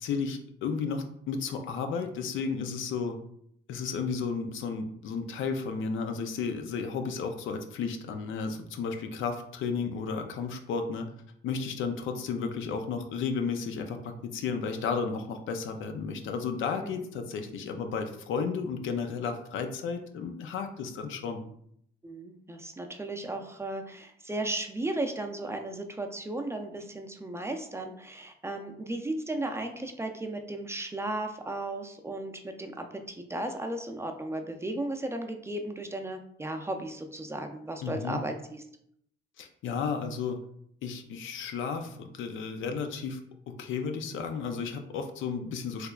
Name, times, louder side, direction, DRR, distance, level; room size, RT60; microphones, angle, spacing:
voice 1, 0.0-3.2 3.7-11.1 11.4-21.5 37.8-38.2 39.4-40.4 40.8-43.2 43.5-45.9, left 5 dB, 80° left, 6 dB, 0.5 m, -33 dB
voice 2, 22.0-38.6, right 1 dB, 15° right, 4 dB, 0.4 m, -35 dB
3.4 x 3.0 x 2.3 m, 0.69 s
cardioid pair, 90°, 20 cm